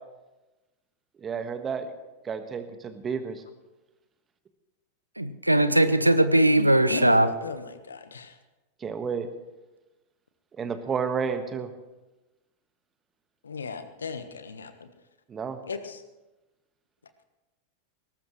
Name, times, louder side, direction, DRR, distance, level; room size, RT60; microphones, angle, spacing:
voice 1, 1.2-1.9 2.2-3.4 8.8-9.3 10.6-11.7 15.3-15.6, right 6 dB, 20° right, 9 dB, 1.6 m, -31 dB
voice 2, 5.2-7.3, right 1 dB, 85° right, 13 dB, 0.8 m, -20 dB
voice 3, 6.6-8.4 13.4-14.9 15.7-16.0, left 4 dB, 70° left, 10 dB, 1.3 m, -35 dB
21.0 x 18.5 x 3.2 m, 1.1 s
figure-of-eight pair, 90°, 0 cm